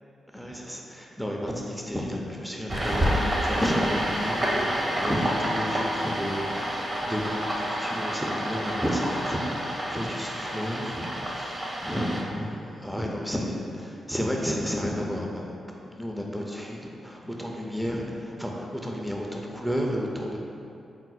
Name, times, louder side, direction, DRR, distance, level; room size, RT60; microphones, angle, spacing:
voice 1, 0.3-20.4, equal, ahead, -1 dB, 0.6 m, -32 dB
sound 1, 2.7-12.2, equal, 40° right, 0.8 m, -29 dB
4.6 x 2.0 x 4.1 m, 2.6 s
supercardioid pair, 50°, 0 cm